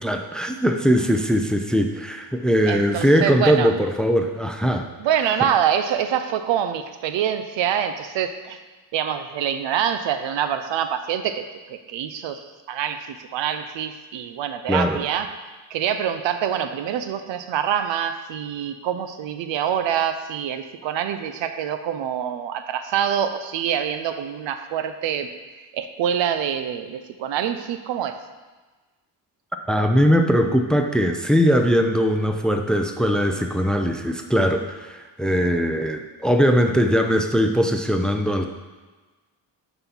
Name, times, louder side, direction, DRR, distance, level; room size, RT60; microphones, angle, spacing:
voice 1, 0.0-4.9 14.7-15.0 29.7-38.5, equal, ahead, 5 dB, 0.6 m, -20 dB
voice 2, 2.7-3.7 5.0-8.6 8.9-28.2 35.2-35.5, right 9 dB, 70° right, 9 dB, 0.8 m, -26 dB
8.8 x 4.2 x 5.6 m, 1.3 s
cardioid pair, 80°, 46 cm